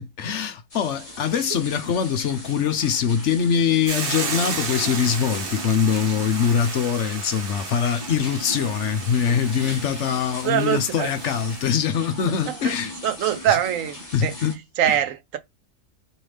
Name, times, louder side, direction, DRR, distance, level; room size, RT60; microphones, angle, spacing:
voice 1, 0.0-12.9 14.1-14.6 14.9-15.0, left 7 dB, 65° left, 1.0 m, -23 dB
sound 1, 0.7-14.6, left 1 dB, 25° left, 2.0 m, -38 dB
Hiss / Boiling, 3.9-11.7, right 5 dB, 50° right, 1.0 m, -33 dB
voice 2, 10.4-11.1 12.6-12.7 13.0-14.3 14.8-15.4, right 11 dB, 85° right, 1.1 m, -23 dB
4.7 x 3.1 x 3.3 m
omnidirectional pair, 1.4 m